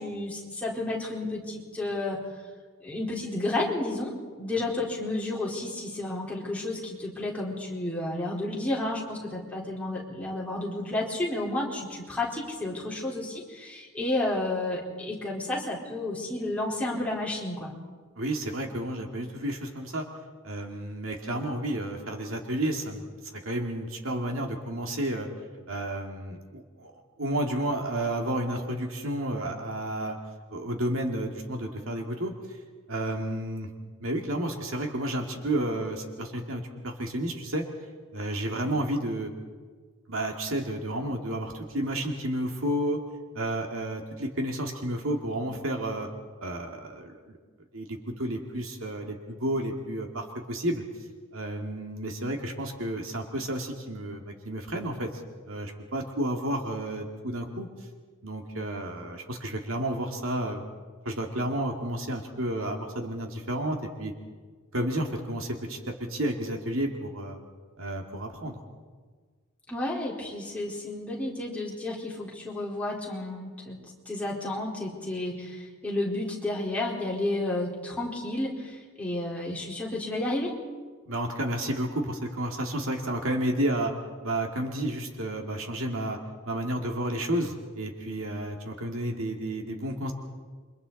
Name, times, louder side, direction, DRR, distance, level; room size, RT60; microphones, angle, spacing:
voice 1, 0.0-2.2 2.8-17.7 69.7-73.8 74.1-80.5, left 2 dB, 5° left, -5 dB, 4.4 m, -31 dB
voice 2, 18.2-20.0 20.4-23.0 23.4-25.3 25.7-30.2 30.5-32.6 32.9-33.7 34.0-37.6 38.1-39.3 40.1-43.0 43.3-46.1 46.4-47.4 47.7-50.8 51.3-55.1 55.5-57.7 58.2-60.6 61.0-64.1 64.7-67.4 67.8-68.6 81.1-83.9 84.2-86.2 86.5-90.1, right 1 dB, 65° right, 2 dB, 2.4 m, -31 dB
29.0 x 24.5 x 4.2 m, 1.5 s
head